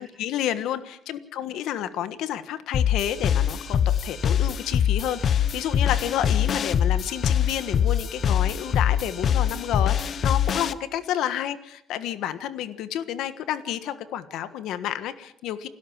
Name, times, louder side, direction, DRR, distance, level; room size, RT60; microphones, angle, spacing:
voice 1, 0.0-15.7, left 11 dB, 90° left, 12 dB, 1.4 m, -30 dB
sound 1, 2.7-10.7, left 8 dB, 60° left, 0.9 m, -23 dB
28.5 x 12.5 x 7.4 m, 0.71 s
cardioid pair, 90°, 0 cm